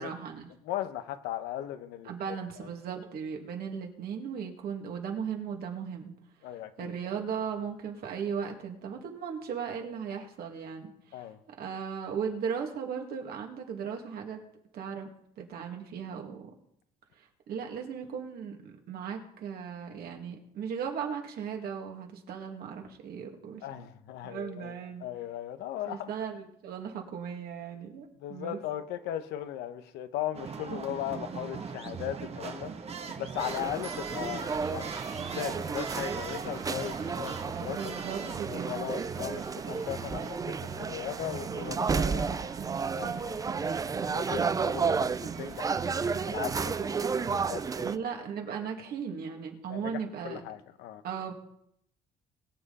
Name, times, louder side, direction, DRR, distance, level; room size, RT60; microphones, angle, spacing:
voice 1, 0.0-0.5 2.0-6.1 6.8-11.3 11.6-14.4 14.7-15.1 15.4-16.5 17.2-23.9 24.2-25.0 25.9-28.6 34.2-34.3 37.7-38.9 47.8-50.4 51.0-51.3, right 7 dB, 65° right, 2 dB, 2.5 m, -37 dB
voice 2, 0.6-2.7 6.4-6.9 11.1-11.4 23.6-26.1 28.2-32.7 33.2-37.8 38.5-42.5 43.0-43.7 44.1-48.0 49.7-51.0, left 12 dB, 90° left, 10 dB, 1.0 m, -38 dB
sound 1, 30.3-47.9, right 6 dB, 35° right, 1.4 m, -40 dB
sound 2, 33.4-48.0, right 5 dB, 20° right, 0.4 m, -32 dB
21.5 x 7.6 x 4.2 m, 0.74 s
cardioid pair, 110°, 17 cm